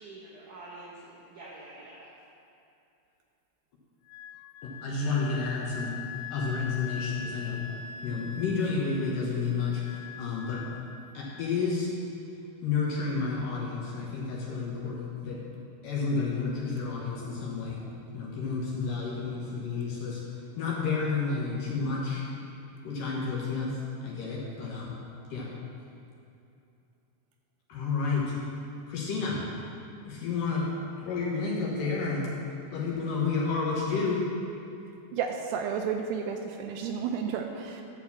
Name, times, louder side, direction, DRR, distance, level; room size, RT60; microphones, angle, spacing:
voice 1, 0.0-2.1, right 2 dB, 65° right, -6 dB, 2.1 m, -46 dB
Wind instrument woodwind instrument, 4.1-11.5, left 6 dB, 85° left, 2.8 m, -43 dB
voice 2, 4.6-5.9 6.3-7.7 8.0-10.6 11.1-11.9 12.6-15.4 15.8-17.8 18.1-20.2 20.6-22.2 22.8-25.0 25.3-25.5 27.7-28.3 28.9-29.4 30.0-30.7 31.0-32.3 32.7-34.3, left 4 dB, 65° left, -4 dB, 2.3 m, -30 dB
voice 3, 35.1-37.8, right 7 dB, 80° right, 4 dB, 2.5 m, -32 dB
11.5 x 4.5 x 7.1 m, 2.7 s
omnidirectional pair, 5.1 m